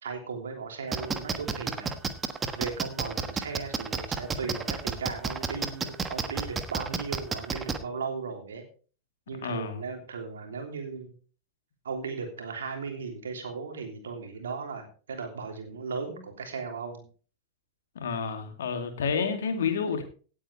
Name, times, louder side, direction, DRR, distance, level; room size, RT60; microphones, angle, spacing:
voice 1, 0.0-2.0 2.5-8.6 9.3-11.1 11.8-17.0, right 5 dB, 65° right, 3.2 m, -36 dB
sound 1, 0.9-7.8, right 5 dB, 20° right, 1.3 m, -30 dB
voice 2, 9.4-9.8 17.9-20.0, left 6 dB, 60° left, 2.6 m, -29 dB
17.5 x 8.6 x 3.4 m
figure-of-eight pair, 90°, 0 cm